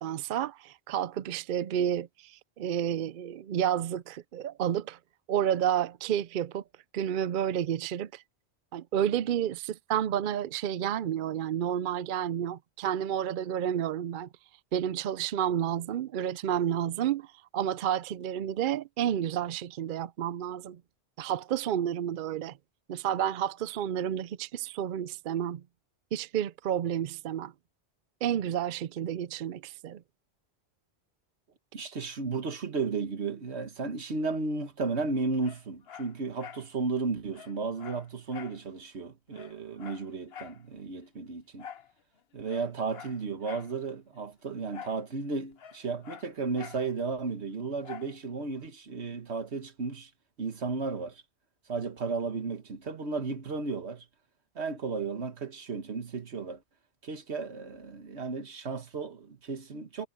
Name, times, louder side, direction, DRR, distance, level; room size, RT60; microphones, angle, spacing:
voice 1, 0.0-5.0 5.3-6.6 6.9-8.2 8.7-14.3 14.7-20.8 21.2-22.6 22.9-25.6 26.1-27.5 28.2-30.0, right 10 dB, 60° right, 0.6 m, -30 dB
voice 2, 31.7-41.7 42.3-50.1 50.4-51.2 51.7-54.1 54.5-56.6 57.0-60.1, right 4 dB, 80° right, 1.7 m, -34 dB
Dog, 35.4-36.7 37.0-37.1 37.3-38.6 39.0-39.1 39.3-40.6 41.6-41.9 42.4-43.7 44.7-45.0 45.3-46.9 47.8-48.2 48.6-48.7, left 8 dB, 70° left, 1.1 m, -46 dB
omnidirectional pair, 1.1 m